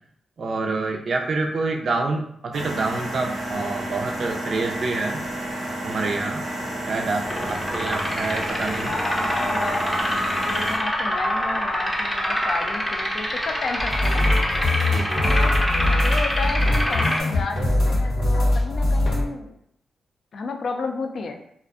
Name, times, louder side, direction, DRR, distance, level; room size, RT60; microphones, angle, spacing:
voice 1, 0.4-5.3 5.8-6.5 6.9-8.9 14.9-15.2, right 3 dB, 60° right, 2 dB, 0.4 m, -27 dB
sound 1, 2.5-10.8, right 1 dB, 85° right, 0.8 m, -31 dB
sound 2, 7.2-17.2, equal, 10° left, 0.5 m, -25 dB
voice 2, 8.7-14.2 15.3-15.5 15.9-19.6 20.3-21.4, left 4 dB, 65° left, 5 dB, 0.3 m, -32 dB
sound 3, 13.8-19.3, left 1 dB, 85° left, 0.7 m, -22 dB
2.4 x 2.1 x 2.4 m, 0.70 s
cardioid pair, 70°, 0 cm